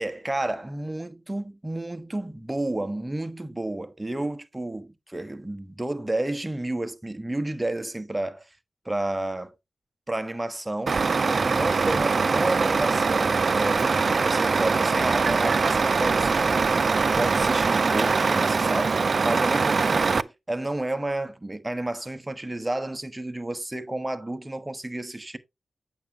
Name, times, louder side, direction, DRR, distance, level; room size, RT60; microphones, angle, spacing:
voice 1, 0.0-8.5 8.8-9.5 10.1-11.0 11.3-16.7 17.1-18.9 19.2-25.4, right 1 dB, 15° right, 1.1 m, -31 dB
Truck, 10.9-20.2, right 4 dB, 55° right, 0.4 m, -22 dB
8.5 x 7.2 x 2.8 m
cardioid pair, 65°, 0 cm